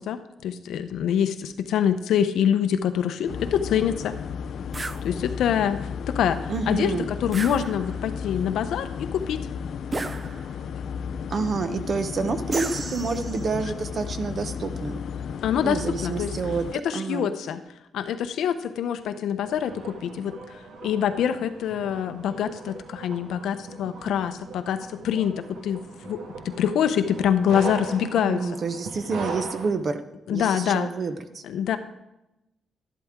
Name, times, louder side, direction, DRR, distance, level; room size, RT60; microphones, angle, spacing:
voice 1, 0.0-4.1 5.0-9.4 15.4-16.3 16.7-17.6 17.9-26.2 26.4-28.5 30.3-30.9 31.4-31.8, left 9 dB, 90° left, 9 dB, 0.7 m, -25 dB
sound 1, 3.3-16.7, left 7 dB, 55° left, 0.4 m, -34 dB
sound 2, 4.7-5.1 7.3-8.1 9.9-10.7 12.5-13.6, right 3 dB, 20° right, 0.3 m, -33 dB
voice 2, 6.5-7.1 11.3-15.0 15.6-16.7 16.9-17.3 28.2-30.0 30.3-31.4, right 4 dB, 35° right, 10 dB, 0.7 m, -28 dB
sound 3, 19.4-29.7, right 3 dB, 90° right, 1.4 m, -39 dB
12.5 x 11.0 x 3.6 m, 0.93 s
wide cardioid pair, 180°, 0 cm